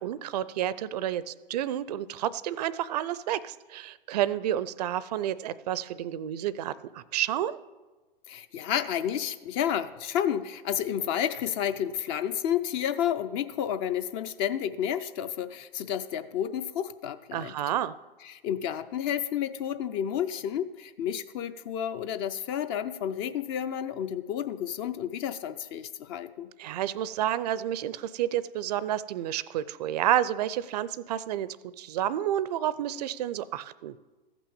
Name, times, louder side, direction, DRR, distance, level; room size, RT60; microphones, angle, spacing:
voice 1, 0.0-7.6 17.3-17.9 26.6-33.9, right 11 dB, 45° right, 18 dB, 0.5 m, -30 dB
voice 2, 8.3-17.5 18.2-26.5, left 9 dB, 25° left, 12 dB, 0.4 m, -31 dB
14.5 x 6.0 x 7.1 m, 1.2 s
hypercardioid pair, 115°, 29 cm